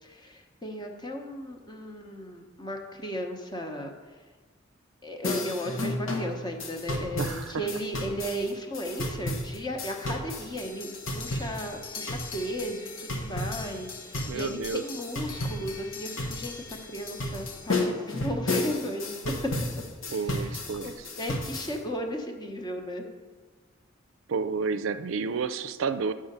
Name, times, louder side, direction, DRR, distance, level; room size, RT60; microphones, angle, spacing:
voice 1, 0.0-3.9 5.0-19.5 20.2-20.6 20.8-23.1, equal, 20° left, 3 dB, 0.9 m, -35 dB
sound 1, 5.2-21.8, left 2 dB, 90° left, 1.2 m, -33 dB
voice 2, 7.2-7.5 14.3-14.8 20.1-20.9 24.3-26.1, right 5 dB, 75° right, 12 dB, 0.4 m, -30 dB
9.5 x 3.8 x 6.6 m, 1.4 s
head